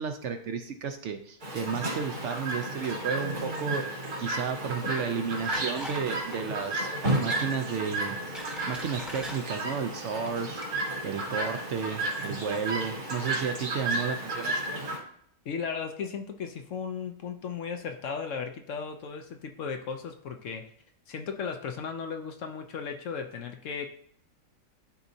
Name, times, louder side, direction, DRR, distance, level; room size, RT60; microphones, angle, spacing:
voice 1, 0.0-6.9 7.2-8.2 8.7-10.6 11.0-14.7, right 6 dB, 65° right, 6 dB, 0.8 m, -33 dB
Chirp tweet, 1.4-15.0, right 2 dB, 85° right, 3.0 m, -33 dB
sound 1, 5.5-6.1 6.3-6.5 7.1-7.5 8.0-9.4 10.1-10.3 10.6-10.7, equal, ahead, 0.8 m, -40 dB
voice 2, 15.5-20.7 21.1-23.9, left 6 dB, 65° left, 6 dB, 0.9 m, -36 dB
11.5 x 4.0 x 2.7 m, 0.65 s
omnidirectional pair, 1.6 m